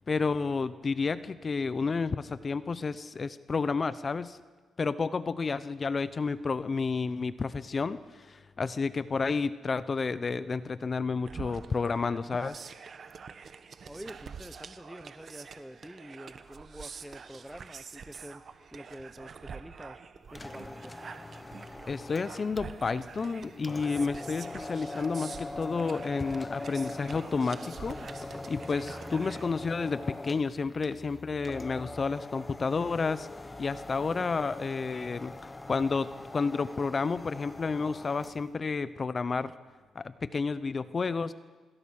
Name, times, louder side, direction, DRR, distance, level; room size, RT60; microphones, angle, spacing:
voice 1, 0.1-4.4 4.8-12.6 21.9-33.3 33.6-35.4 35.7-39.5 39.9-41.3, left 4 dB, 40° left, 0.8 m, -31 dB
sound 1, 11.3-29.5, right 6 dB, 50° right, 1.4 m, -46 dB
voice 2, 13.8-20.0 20.3-21.0, equal, 5° right, 1.0 m, -47 dB
sound 2, 20.2-38.5, left 2 dB, 20° left, 1.1 m, -42 dB
26.0 x 22.0 x 6.5 m
cardioid pair, 85°, 0 cm